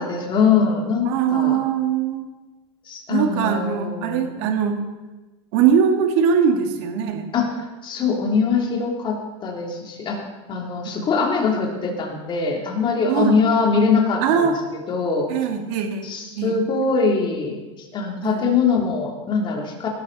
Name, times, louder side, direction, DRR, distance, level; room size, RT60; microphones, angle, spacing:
voice 1, 0.0-1.6 2.9-4.5 7.3-7.5 7.8-9.2 9.4-10.2 10.5-14.5 14.9-15.3 16.0-19.9, left 5 dB, 35° left, 0 dB, 3.4 m, -22 dB
voice 2, 1.0-2.2 3.1-4.8 5.5-7.3 13.1-13.4 14.2-14.6 15.3-16.1 16.4-16.6 18.2-18.5, right 7 dB, 65° right, 4 dB, 2.2 m, -21 dB
18.0 x 12.5 x 4.2 m, 1.1 s
supercardioid pair, 120°, 14 cm